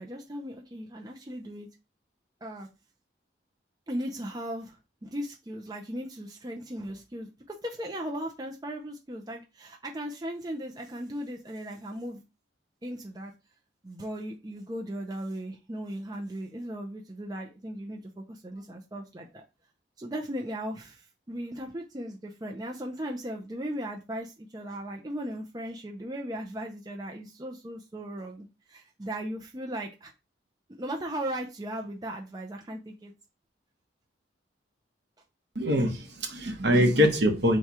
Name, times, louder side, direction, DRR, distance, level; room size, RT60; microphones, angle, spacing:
voice 1, 0.0-1.7 2.4-2.7 3.9-12.2 12.8-13.3 13.8-19.4 20.0-30.1 30.8-33.1, right 1 dB, 20° right, 0.5 m, -37 dB
voice 2, 35.5-37.6, equal, 60° right, 1.0 m, -23 dB
4.2 x 2.3 x 4.6 m
head